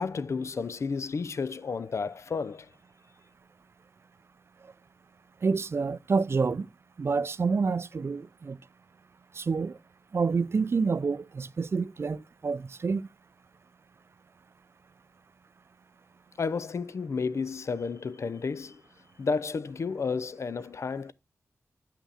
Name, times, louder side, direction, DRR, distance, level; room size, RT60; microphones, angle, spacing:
voice 1, 0.0-2.7 16.4-18.8 19.2-21.1, left 5 dB, 65° left, 0.5 m, -32 dB
voice 2, 5.4-6.7 7.0-8.6 9.4-9.7 10.1-13.1, right 4 dB, 50° right, 0.4 m, -28 dB
8.4 x 5.8 x 4.1 m
wide cardioid pair, 105°, 5 cm